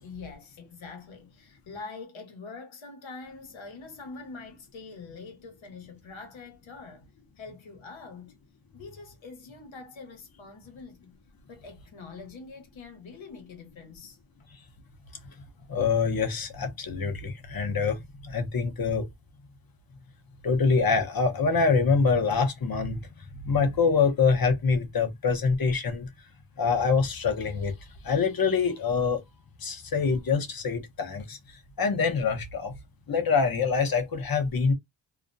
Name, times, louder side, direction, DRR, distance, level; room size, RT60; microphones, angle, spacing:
voice 1, 0.0-7.0 7.4-8.3 8.7-11.1 11.5-14.2, left 4 dB, 75° left, 1.0 m, -44 dB
voice 2, 15.7-19.1 20.4-23.0 23.4-26.1 26.6-27.7 28.0-29.2 29.6-31.4 31.8-32.7 33.1-34.7, left 5 dB, 50° left, 0.8 m, -25 dB
2.4 x 2.1 x 2.5 m
cardioid pair, 65°, 48 cm